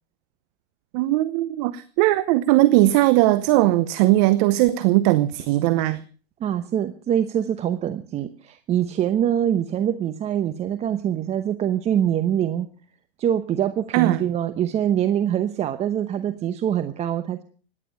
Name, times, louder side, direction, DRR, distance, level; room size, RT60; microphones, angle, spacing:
voice 1, 0.9-6.0 13.9-14.2, right 16 dB, 40° right, 0.9 m, -19 dB
voice 2, 6.4-12.7 13.2-17.4, right 10 dB, 20° right, 0.9 m, -24 dB
17.0 x 11.0 x 6.8 m
hypercardioid pair, 130°, 31 cm